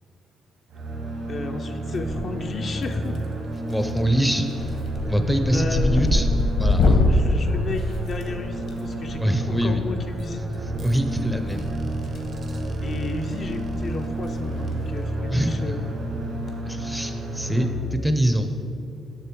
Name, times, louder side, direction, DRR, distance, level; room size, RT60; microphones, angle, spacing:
sound 1, 0.7-17.7, right 1 dB, 75° right, 2.0 m, -31 dB
voice 1, 1.3-3.2 5.5-6.0 7.1-10.4 12.8-15.9, left 3 dB, 45° left, 5 dB, 0.5 m, -33 dB
sound 2, 1.9-2.5 2.8-3.3 3.7-4.0 4.3-8.7 10.1-10.2 11.5-12.3 12.5-12.8 13.3-13.4 13.6-13.7 14.1-14.3 14.6-14.7 16.2-16.5, left 2 dB, 65° left, 1.0 m, -23 dB
voice 2, 3.7-4.7 5.1-6.3 6.6-7.0 9.2-9.8 10.8-11.7 15.3-15.7 16.7-18.5, equal, ahead, 6 dB, 0.5 m, -24 dB
sound 3, 8.3-16.8, right 2 dB, 50° right, 0.7 m, -41 dB
6.8 x 6.6 x 4.5 m, 2.6 s
cardioid pair, 90°, 0 cm